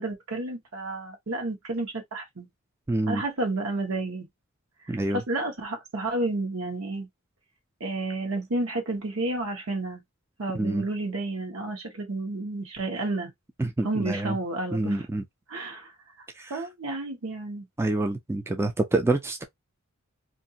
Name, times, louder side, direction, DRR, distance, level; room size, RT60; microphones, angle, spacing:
voice 1, 0.0-2.5 3.1-4.3 4.8-7.1 7.8-10.0 10.4-13.3 13.8-15.1 15.5-15.9 16.5-17.6, right 2 dB, 75° right, 1.0 m, -31 dB
voice 2, 2.9-3.2 4.9-5.2 10.5-10.8 13.6-14.3 14.7-15.2 16.4-16.5 17.8-19.4, right 2 dB, 10° right, 0.3 m, -27 dB
2.6 x 2.4 x 2.7 m
head